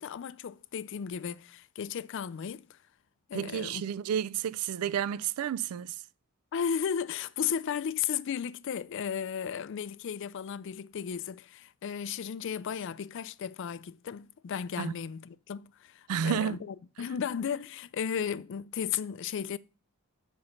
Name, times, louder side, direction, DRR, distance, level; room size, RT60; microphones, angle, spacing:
voice 1, 0.0-2.8 3.3-3.8 6.5-19.6, left 7 dB, 55° left, 0.4 m, -35 dB
voice 2, 3.3-6.0 14.8-14.9 16.1-16.6, right 8 dB, 85° right, 0.3 m, -31 dB
6.8 x 4.1 x 5.2 m
head